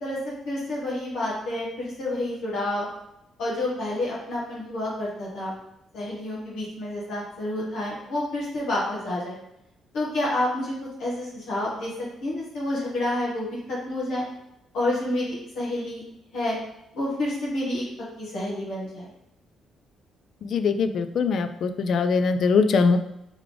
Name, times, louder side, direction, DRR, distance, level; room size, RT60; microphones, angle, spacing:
voice 1, 0.0-2.8 3.4-5.5 5.9-9.4 9.9-10.7 11.0-11.9 12.2-14.3 14.7-16.0 16.3-16.6 16.9-17.8 18.2-19.1, left 1 dB, 80° left, -6 dB, 1.3 m, -29 dB
voice 2, 20.5-23.0, left 5 dB, 60° left, 9 dB, 0.4 m, -22 dB
3.5 x 3.2 x 3.6 m, 0.84 s
cardioid pair, 90°, 0 cm